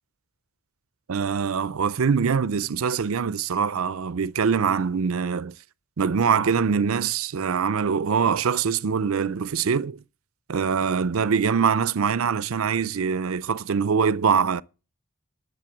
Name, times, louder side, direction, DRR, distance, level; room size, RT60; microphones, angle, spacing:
voice 1, 1.1-5.6 6.0-10.0 10.5-14.6, right 6 dB, 80° right, 0.5 m, -23 dB
10.5 x 6.6 x 7.7 m
head